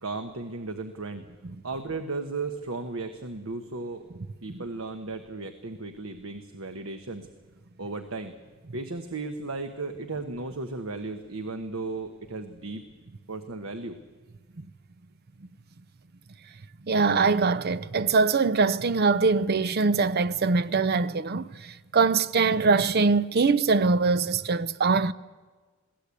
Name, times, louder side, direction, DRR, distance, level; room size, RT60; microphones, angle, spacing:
voice 1, 0.0-1.2 1.6-4.0 4.4-7.3 7.8-8.3 8.7-12.8 13.3-14.0, right 3 dB, 85° right, 1.2 m, -35 dB
voice 2, 16.9-25.1, right 4 dB, 50° right, 0.6 m, -23 dB
22.0 x 17.0 x 8.4 m
head